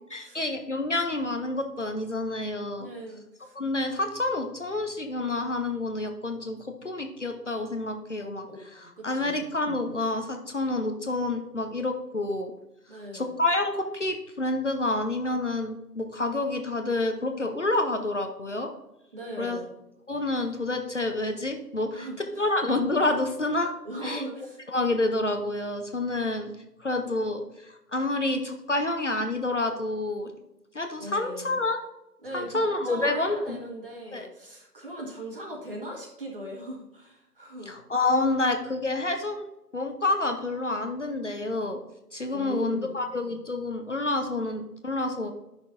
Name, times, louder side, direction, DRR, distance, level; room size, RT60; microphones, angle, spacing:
voice 1, 0.0-2.9 3.6-8.5 9.0-12.5 13.1-18.7 19.4-19.6 20.1-23.7 24.0-24.2 24.7-26.5 26.8-30.3 30.7-31.8 32.3-33.6 34.1-34.3 37.7-39.5 39.7-41.8 42.1-45.3, left 2 dB, 45° left, 5 dB, 0.7 m, -28 dB
voice 2, 2.8-3.5 8.5-9.5 12.9-13.3 19.1-19.7 21.9-22.4 23.8-24.6 31.0-31.5 32.2-37.7 42.3-43.0, right 1 dB, 35° right, 0 dB, 1.6 m, -39 dB
10.5 x 6.1 x 2.6 m, 0.93 s
figure-of-eight pair, 155°, 50 cm